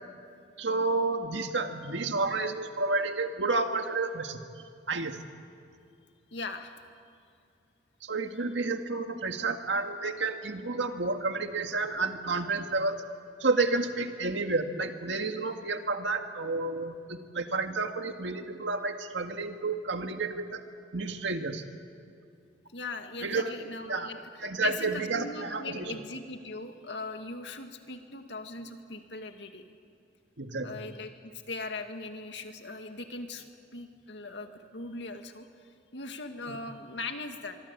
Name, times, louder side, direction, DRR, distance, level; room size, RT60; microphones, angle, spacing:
voice 1, 0.6-4.5 4.9-5.2 8.0-13.0 13.4-20.6 20.9-21.6 23.2-23.5 23.9-24.1 24.4-26.0 30.4-30.8 36.5-36.6, right 3 dB, 85° right, 6 dB, 1.9 m, -30 dB
voice 2, 6.3-6.8 22.7-29.6 30.6-33.5 33.7-35.5 35.9-37.6, left 3 dB, 80° left, 5 dB, 2.2 m, -40 dB
24.5 x 24.0 x 8.4 m, 2.4 s
head